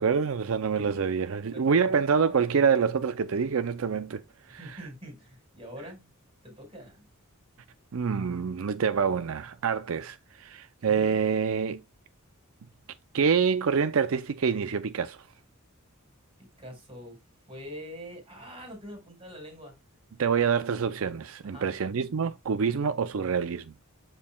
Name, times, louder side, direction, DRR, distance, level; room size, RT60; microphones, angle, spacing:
voice 1, 0.0-4.9 7.9-11.8 13.1-15.3 20.2-23.7, right 6 dB, 65° right, 0.5 m, -26 dB
voice 2, 4.6-6.1 6.4-7.0 10.9-11.2 16.6-17.2 17.5-19.8 21.4-21.7, equal, 25° right, 5.0 m, -44 dB
12.5 x 4.5 x 2.3 m
head